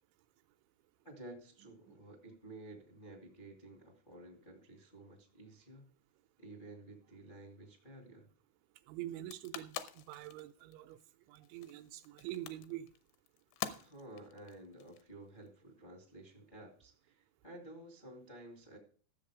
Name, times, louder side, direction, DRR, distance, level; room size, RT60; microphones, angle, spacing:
voice 1, 1.0-5.9 6.4-8.3 13.8-18.8, right 1 dB, 55° left, 0.5 m, -53 dB
voice 2, 1.6-2.0 8.9-11.0 11.3-12.9, right 14 dB, 80° right, 2.9 m, -45 dB
sound 1, 9.1-15.5, left 12 dB, 80° left, 3.0 m, -46 dB
13.5 x 7.5 x 4.9 m
omnidirectional pair, 5.5 m